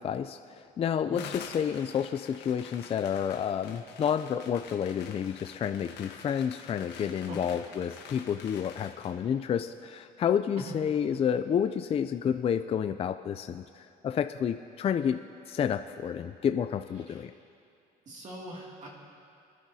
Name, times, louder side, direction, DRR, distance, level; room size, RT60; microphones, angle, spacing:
voice 1, 0.0-15.2 15.5-17.3, left 8 dB, 35° left, 9 dB, 0.4 m, -30 dB
sound 1, 1.2-9.2, left 6 dB, 85° left, 1.2 m, -47 dB
voice 2, 18.1-18.9, right 1 dB, 45° right, -3 dB, 2.3 m, -41 dB
26.5 x 10.0 x 2.8 m, 2.4 s
cardioid pair, 110°, 17 cm